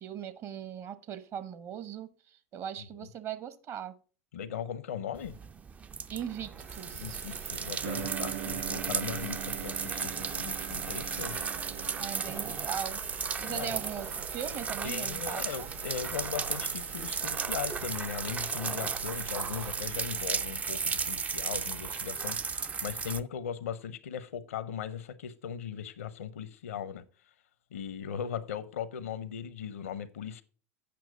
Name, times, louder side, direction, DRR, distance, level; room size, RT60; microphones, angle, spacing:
voice 1, 0.0-2.1 2.5-4.0 6.1-7.2 12.0-13.0 13.4-15.7, right 9 dB, 40° right, 0.8 m, -39 dB
voice 2, 4.3-5.4 6.9-11.5 11.8-12.0 12.3-12.4 13.4-13.8 14.8-27.0 27.7-30.4, left 8 dB, 70° left, 0.7 m, -38 dB
sound 1, 5.2-23.2, right 5 dB, 20° right, 0.4 m, -35 dB
sound 2, 6.5-20.2, right 6 dB, 75° right, 1.4 m, -46 dB
sound 3, 7.8-12.7, right 11 dB, 60° right, 2.3 m, -41 dB
8.5 x 6.0 x 4.8 m
figure-of-eight pair, 80°, 8 cm